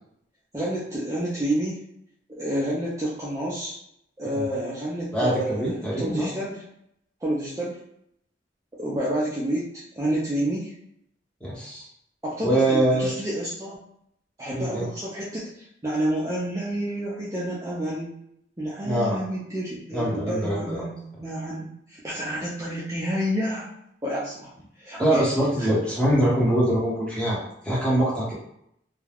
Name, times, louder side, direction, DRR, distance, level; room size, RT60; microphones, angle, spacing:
voice 1, 0.5-1.8 2.3-3.7 4.2-6.6 7.2-7.8 8.8-9.7 9.9-10.7 12.2-13.8 14.4-18.1 18.6-23.7 24.0-24.5 24.8-25.3 25.6-26.0, right 1 dB, 15° right, -8 dB, 0.4 m, -29 dB
voice 2, 5.1-6.3 11.4-11.9 12.4-13.1 14.5-14.9 18.8-19.2 19.9-20.8 25.0-28.3, right 1 dB, 5° left, -7 dB, 0.9 m, -23 dB
2.3 x 2.2 x 3.3 m, 0.75 s
head